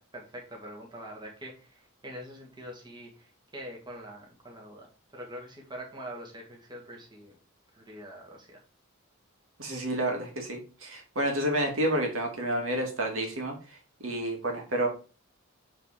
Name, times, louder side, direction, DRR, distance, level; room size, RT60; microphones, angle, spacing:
voice 1, 0.0-7.3 7.7-8.6, equal, 20° right, -1 dB, 1.9 m, -44 dB
voice 2, 9.6-13.5 14.0-14.9, right 1 dB, 65° right, 1 dB, 2.2 m, -29 dB
8.3 x 3.7 x 4.9 m, 0.35 s
head